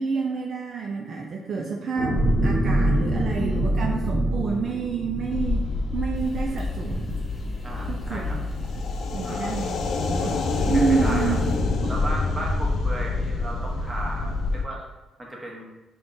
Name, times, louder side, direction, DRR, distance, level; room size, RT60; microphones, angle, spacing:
voice 1, 0.0-5.6 5.9-7.2 7.9-8.4 9.1-10.4 10.7-11.4 11.8-11.9, right 5 dB, 50° right, 0 dB, 0.4 m, -28 dB
sound 1, 2.0-6.5 6.9-7.1, right 1 dB, 10° left, 1.0 m, -25 dB
sound 2, 5.3-14.6, left 3 dB, 70° left, 0.4 m, -27 dB
sound 3, 6.1-11.6, right 1 dB, 35° left, 1.0 m, -40 dB
voice 2, 7.6-8.4 9.2-9.7 10.7-11.3 11.9-14.8 15.2-15.7, right 1 dB, 20° right, -3 dB, 1.0 m, -35 dB
3.6 x 2.2 x 3.8 m, 1.1 s
cardioid pair, 90°, 0 cm